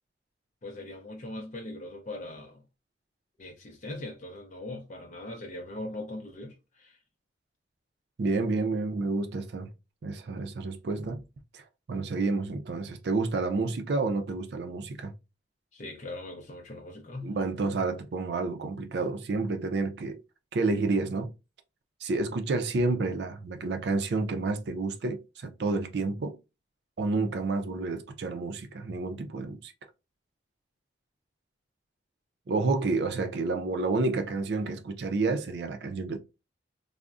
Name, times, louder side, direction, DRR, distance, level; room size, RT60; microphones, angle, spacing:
voice 1, 0.6-2.6 3.4-7.0 15.7-17.4, left 2 dB, 40° left, 0.5 m, -40 dB
voice 2, 8.2-9.7 10.0-11.2 11.5-11.6 11.9-15.1 17.2-20.2 20.5-21.3 22.0-26.4 27.0-29.7 32.5-36.2, right 3 dB, 70° right, 0.4 m, -29 dB
3.5 x 2.0 x 2.4 m
head